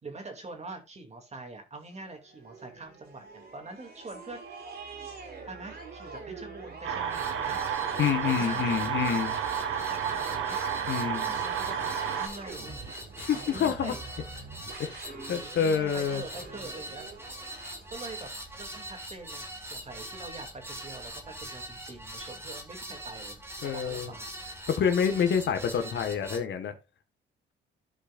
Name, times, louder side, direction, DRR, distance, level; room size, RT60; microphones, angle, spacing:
voice 1, 0.0-4.4 4.7-4.9 5.5-7.6 7.9-8.6 9.8-10.6 11.3-12.9 13.3-14.0 14.3-14.5 15.1-15.3 15.6-17.1 17.9-18.3 18.6-24.3, right 2 dB, 35° right, 2.5 m, -44 dB
sound 1, 1.8-18.9, right 4 dB, 55° right, 3.8 m, -46 dB
sound 2, 6.8-12.3, right 8 dB, 80° right, 1.3 m, -31 dB
sound 3, 7.1-26.4, right 1 dB, 10° right, 1.7 m, -43 dB
voice 2, 8.0-9.3 10.9-11.3 13.2-13.9 14.8-16.2 23.6-24.1 24.7-26.7, left 7 dB, 65° left, 1.5 m, -27 dB
15.0 x 5.2 x 2.5 m
cardioid pair, 90°, 20 cm